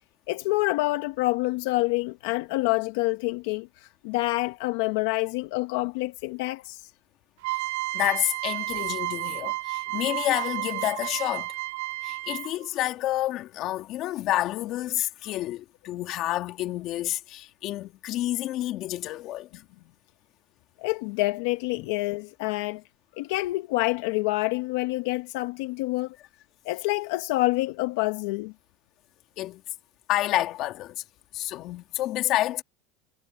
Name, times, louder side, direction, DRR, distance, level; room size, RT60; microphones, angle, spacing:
voice 1, 0.3-6.9 20.8-22.8 23.2-26.2 26.6-28.5, left 21 dB, 75° left, 1.4 m, -27 dB
sound 1, 7.4-12.7, right 21 dB, 80° right, 2.1 m, -32 dB
voice 2, 7.9-11.5 12.0-19.6 21.8-21.9 29.4-29.6 30.1-31.0 31.3-32.6, left 15 dB, 50° left, 2.8 m, -29 dB
supercardioid pair, 135°, 0 cm